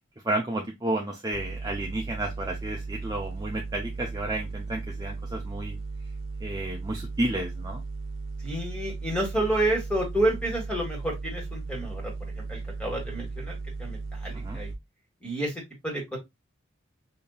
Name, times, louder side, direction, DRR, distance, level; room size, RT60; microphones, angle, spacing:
voice 1, 0.2-5.8 6.4-7.8 14.3-14.6, right 1 dB, 20° right, 0.5 m, -31 dB
sound 1, 1.3-14.8, right 3 dB, 75° right, 0.8 m, -36 dB
voice 2, 8.4-13.5 13.8-14.7 15.2-16.2, right 1 dB, 5° left, 1.6 m, -30 dB
5.1 x 2.8 x 2.3 m
head